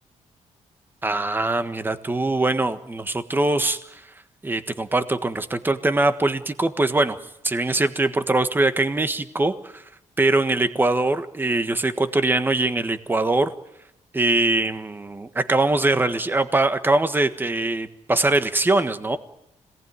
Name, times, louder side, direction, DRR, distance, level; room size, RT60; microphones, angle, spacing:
voice 1, 1.0-4.0 4.4-7.2 7.4-9.8 10.2-13.5 14.1-19.2, right 2 dB, 15° right, 10 dB, 1.5 m, -22 dB
26.5 x 18.5 x 9.6 m, 0.82 s
cardioid pair, 130°, 12 cm